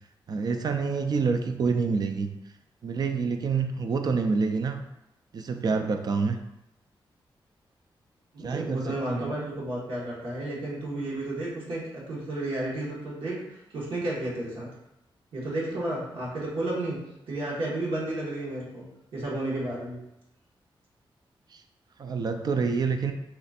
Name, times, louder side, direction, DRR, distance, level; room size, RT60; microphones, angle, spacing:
voice 1, 0.3-2.3 2.8-4.8 5.3-6.4 8.4-9.3 21.5-21.6 22.0-23.1, right 5 dB, 50° right, 6 dB, 0.3 m, -27 dB
voice 2, 8.3-14.7 15.3-17.0 17.3-18.8 19.1-20.0, right 1 dB, 80° right, -6 dB, 1.5 m, -32 dB
4.3 x 2.5 x 4.1 m, 0.89 s
wide cardioid pair, 150°, 9 cm